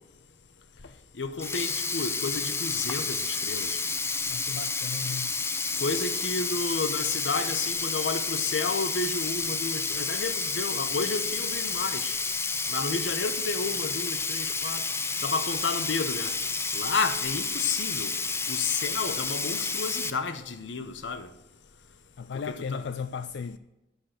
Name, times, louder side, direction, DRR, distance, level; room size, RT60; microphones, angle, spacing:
voice 1, 1.2-3.8 5.8-12.1 12.7-14.9 15.2-16.4 16.7-18.1 18.5-21.3 22.5-22.9, left 4 dB, 90° left, 0.8 m, -31 dB
Sink (filling or washing), 1.3-20.1, left 4 dB, 15° left, 0.5 m, -30 dB
voice 2, 4.3-5.4 22.2-23.6, left 6 dB, 70° left, 0.4 m, -35 dB
10.5 x 5.9 x 6.5 m
head